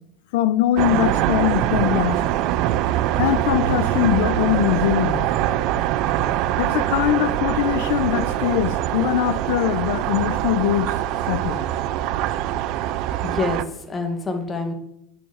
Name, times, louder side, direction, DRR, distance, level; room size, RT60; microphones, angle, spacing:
voice 1, 0.3-2.2 3.2-5.3 6.6-10.9 11.3-11.6, left 12 dB, 85° left, 0.9 m, -22 dB
sound 1, 0.8-13.6, right 12 dB, 55° right, 0.6 m, -23 dB
voice 2, 12.6-14.7, left 3 dB, 15° left, 1.8 m, -28 dB
8.7 x 7.0 x 8.2 m
cardioid pair, 155°, 0 cm